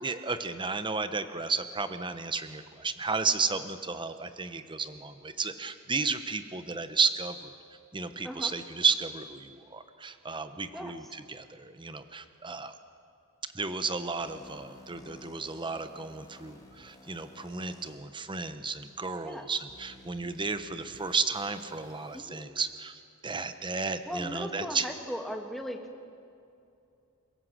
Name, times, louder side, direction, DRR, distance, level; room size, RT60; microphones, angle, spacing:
voice 1, 0.0-7.5 7.9-12.7 13.5-24.9, right 4 dB, 20° right, 10 dB, 1.0 m, -33 dB
sound 1, 14.2-17.9 18.7-18.8 19.7-22.2, left 1 dB, 15° left, 3.6 m, -53 dB
voice 2, 24.1-25.8, equal, ahead, 3 dB, 1.9 m, -37 dB
28.5 x 16.5 x 7.7 m, 2.6 s
head